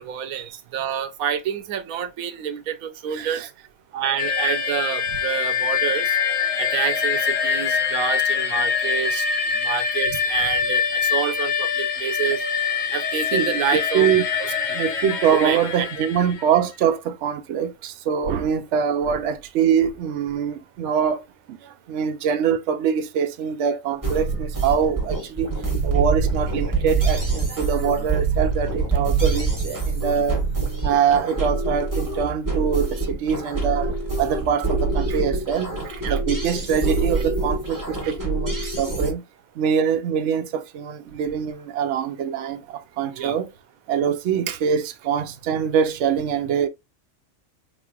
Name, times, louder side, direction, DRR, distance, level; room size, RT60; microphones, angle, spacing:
voice 1, 0.0-3.5 3.9-6.2 6.6-9.2 9.6-12.4 12.9-14.1 14.8-14.9 15.3-15.9 36.0-36.2 43.1-43.4, right 8 dB, 85° right, 1.1 m, -28 dB
voice 2, 3.1-3.5 13.3-13.6 13.9-14.2 14.7-21.2 21.9-25.5 25.8-30.4 30.8-33.9 34.2-35.7 36.1-39.2 39.6-42.6 43.0-43.5 43.9-46.7, right 7 dB, 65° right, 0.8 m, -23 dB
sound 1, 4.2-16.6, left 6 dB, 60° left, 0.5 m, -24 dB
sound 2, 24.0-39.1, right 4 dB, 15° right, 1.1 m, -25 dB
4.3 x 3.0 x 2.3 m
omnidirectional pair, 1.4 m